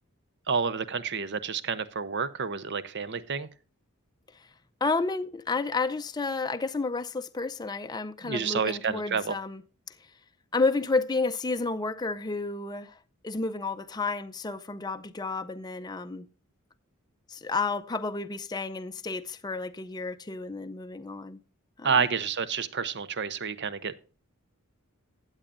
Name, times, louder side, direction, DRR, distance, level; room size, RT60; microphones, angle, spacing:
voice 1, 0.5-3.5 8.2-9.3 21.8-23.9, right 6 dB, 55° right, 0.8 m, -29 dB
voice 2, 4.8-9.6 9.9-10.0 10.5-13.0 13.2-16.3 17.3-21.4 21.8-22.0, left 3 dB, 20° left, 0.5 m, -31 dB
15.5 x 8.9 x 2.5 m
head